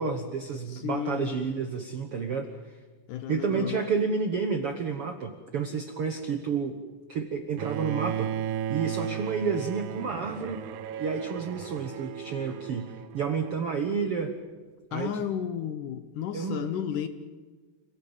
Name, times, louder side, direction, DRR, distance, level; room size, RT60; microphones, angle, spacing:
voice 1, 0.0-2.5 3.3-6.8 7.1-8.3 8.7-10.6 11.0-14.3 14.9-15.2 16.3-16.7, right 5 dB, 70° right, 6 dB, 1.4 m, -30 dB
voice 2, 0.7-1.5 3.1-3.8 14.9-17.1, left 9 dB, 70° left, 9 dB, 2.1 m, -33 dB
Bowed string instrument, 7.6-13.7, right 10 dB, 90° right, 3.0 m, -35 dB
28.0 x 17.5 x 9.0 m, 1.4 s
omnidirectional pair, 4.5 m